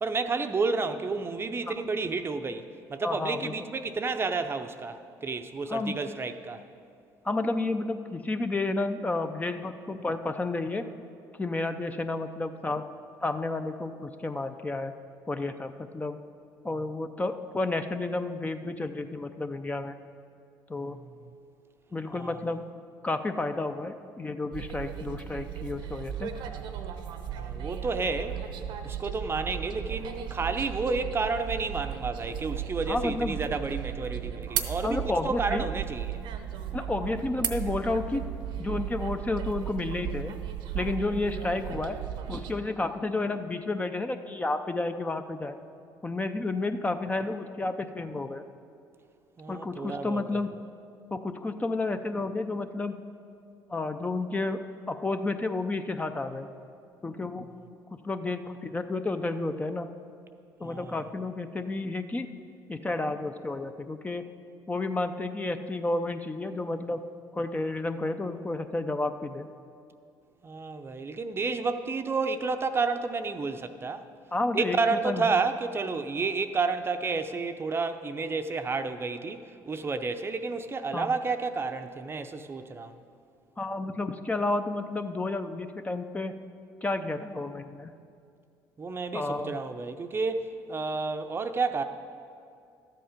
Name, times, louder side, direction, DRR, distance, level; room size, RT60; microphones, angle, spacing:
voice 1, 0.0-6.6 20.8-21.1 22.1-22.4 27.3-28.4 28.8-36.2 49.4-50.2 60.6-61.0 70.4-74.0 74.5-79.4 79.7-83.0 88.8-91.8, right 4 dB, 30° right, 0.6 m, -31 dB
voice 2, 3.0-3.5 5.7-6.0 7.2-10.9 11.4-12.9 13.2-14.9 15.3-16.2 16.6-19.9 20.7-21.0 21.9-22.7 23.0-26.3 32.9-33.4 34.8-35.7 36.7-38.2 38.6-40.3 40.7-42.0 42.3-45.6 46.0-48.5 49.5-50.5 51.1-53.0 53.7-56.5 57.0-57.5 58.0-59.9 60.6-62.3 62.7-64.3 64.7-67.1 67.3-69.5 74.3-75.3 80.9-81.1 83.6-86.3 86.8-88.0 89.1-89.6, left 2 dB, 20° left, 0.5 m, -31 dB
sound 1, 24.5-42.5, right 10 dB, 75° right, 0.8 m, -35 dB
12.5 x 7.8 x 5.0 m
supercardioid pair, 85°, 8 cm